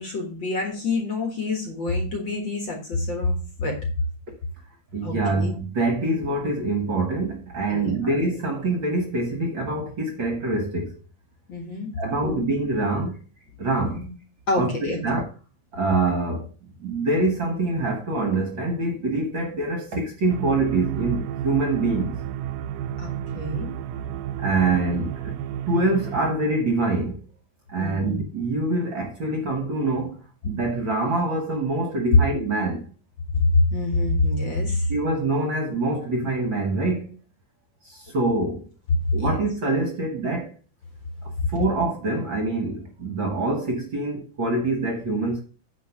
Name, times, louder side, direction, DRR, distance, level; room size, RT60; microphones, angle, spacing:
voice 1, 0.0-3.8 5.0-5.5 7.7-7.9 11.5-11.9 12.2-12.5 13.8-14.1 14.5-15.0 23.0-23.7 27.8-28.2 32.1-32.2 33.5-34.9 39.2-39.4 41.4-41.5, left 2 dB, 45° left, 2.0 m, -25 dB
voice 2, 4.9-10.9 12.0-13.2 13.6-14.0 14.6-15.3 15.7-16.5 16.8-22.1 24.4-25.4 25.7-27.2 27.7-32.8 34.9-37.1 37.8-38.6 39.1-40.5 41.5-45.4, right 2 dB, 50° right, 1.6 m, -25 dB
sound 1, 20.3-26.3, right 10 dB, 85° right, 1.4 m, -32 dB
9.5 x 4.0 x 5.7 m
omnidirectional pair, 3.4 m